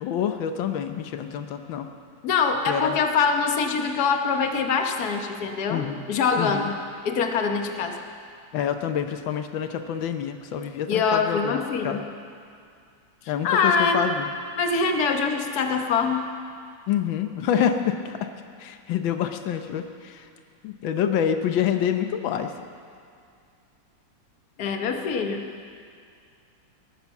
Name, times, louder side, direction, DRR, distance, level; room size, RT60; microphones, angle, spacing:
voice 1, 0.0-1.9 2.7-3.0 5.7-6.1 6.4-6.7 8.5-12.0 13.3-14.3 16.9-18.3 18.6-20.3 20.6-22.5, left 9 dB, 90° left, 7 dB, 1.6 m, -27 dB
voice 2, 2.2-6.7 7.0-8.0 10.9-12.0 13.4-14.1 14.6-16.3 24.6-25.5, left 5 dB, 60° left, 5 dB, 1.5 m, -24 dB
18.0 x 10.5 x 7.2 m, 2.3 s
omnidirectional pair, 2.1 m